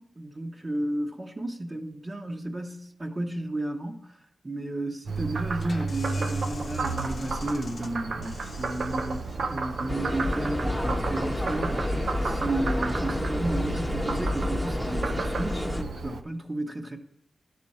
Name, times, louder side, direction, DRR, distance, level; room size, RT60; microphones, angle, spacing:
voice 1, 0.0-4.2 4.4-17.0, right 1 dB, 35° right, 1.2 m, -33 dB
Frog, 5.1-16.2, right 4 dB, 75° right, 0.6 m, -33 dB
sound 1, 5.5-11.0, left 3 dB, 55° left, 0.6 m, -46 dB
sound 2, 9.9-15.8, left 1 dB, ahead, 1.0 m, -29 dB
12.0 x 6.2 x 4.3 m
cardioid pair, 60°, 0 cm